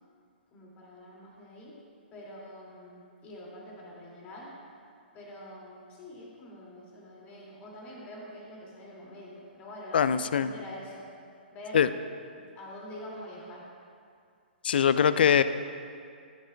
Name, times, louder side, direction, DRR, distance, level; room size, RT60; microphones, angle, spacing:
voice 1, 0.5-1.8 2.1-4.5 5.1-11.1 11.5-11.8 12.4-13.7, equal, 25° left, -4 dB, 2.4 m, -45 dB
voice 2, 9.9-10.5 11.7-11.9 14.6-15.4, left 8 dB, 65° left, 13 dB, 0.4 m, -22 dB
14.5 x 8.0 x 2.3 m, 2.3 s
hypercardioid pair, 130°, 6 cm